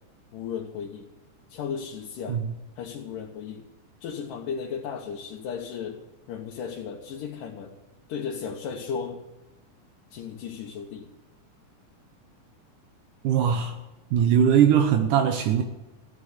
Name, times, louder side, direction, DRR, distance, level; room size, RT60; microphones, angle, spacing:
voice 1, 0.3-1.1 1.5-2.4 2.8-3.7 4.0-7.8 8.1-9.2 10.1-11.1, left 6 dB, 80° left, 0 dB, 2.8 m, -35 dB
voice 2, 13.2-13.8 14.1-15.6, right 8 dB, 75° right, 5 dB, 2.4 m, -20 dB
15.0 x 8.5 x 8.1 m, 1.0 s
omnidirectional pair, 3.8 m